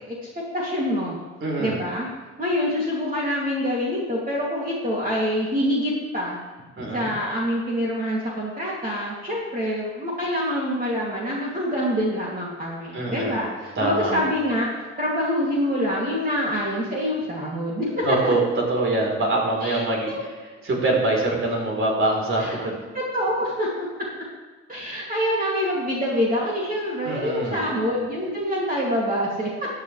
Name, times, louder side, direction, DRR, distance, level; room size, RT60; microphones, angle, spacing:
voice 1, 0.5-1.2 1.6-2.1 2.4-6.4 6.9-14.7 15.0-18.3 19.6-20.1 22.4-22.5 22.9-23.9 24.7-29.7, equal, 30° right, -5 dB, 2.9 m, -26 dB
voice 2, 1.4-1.8 6.8-7.1 12.9-13.4 13.8-14.2 18.0-20.1 20.6-22.8 27.0-27.7, right 2 dB, 45° right, -1 dB, 4.0 m, -24 dB
14.0 x 9.3 x 3.4 m, 1.3 s
cardioid pair, 90°, 30 cm